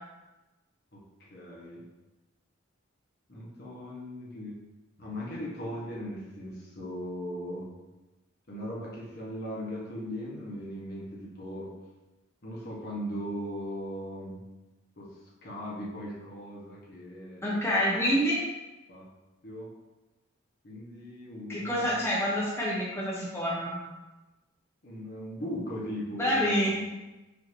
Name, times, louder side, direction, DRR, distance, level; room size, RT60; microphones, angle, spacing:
voice 1, 0.9-1.8 3.3-4.6 5.0-7.7 8.5-11.7 12.4-14.4 15.0-17.7 18.9-19.1 19.4-19.7 20.6-22.1 24.8-26.7, equal, 50° left, -5 dB, 1.0 m, -38 dB
voice 2, 17.4-18.4 21.5-23.8 26.2-26.7, equal, 10° left, -6 dB, 0.6 m, -27 dB
5.1 x 2.7 x 3.0 m, 1.1 s
head